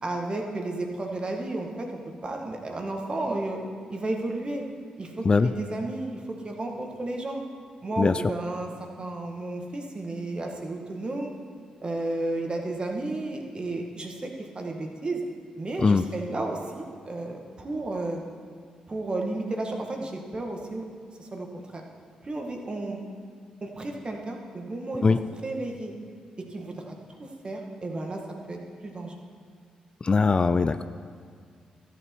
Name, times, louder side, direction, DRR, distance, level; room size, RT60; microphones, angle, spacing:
voice 1, 0.0-1.9 2.2-3.6 3.9-4.6 5.0-7.4 7.8-8.7 9.0-11.3 11.8-15.2 15.5-18.2 18.9-20.8 21.2-21.8 22.2-23.0 23.6-25.2 25.4-25.9 26.5-28.2 28.5-29.1, right 2 dB, 40° right, 2 dB, 1.8 m, -32 dB
voice 2, 30.0-30.8, left 4 dB, 35° left, 11 dB, 0.4 m, -21 dB
13.0 x 8.5 x 4.6 m, 2.1 s
supercardioid pair, 50°, 3 cm